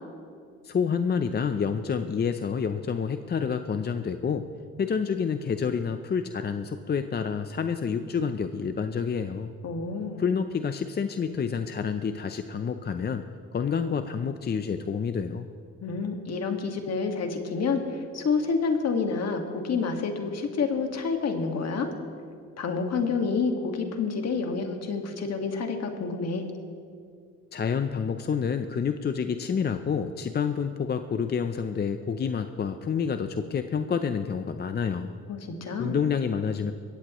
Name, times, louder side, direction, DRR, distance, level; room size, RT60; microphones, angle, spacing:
voice 1, 0.6-4.5 4.8-9.5 10.2-13.2 13.5-15.4 27.5-35.1 35.8-36.7, left 6 dB, 35° left, 8 dB, 0.6 m, -28 dB
voice 2, 9.6-10.2 15.8-21.9 22.6-26.5 35.3-36.0, left 4 dB, 55° left, 4 dB, 1.9 m, -28 dB
22.0 x 16.5 x 3.1 m, 2.3 s
cardioid pair, 90°, 30 cm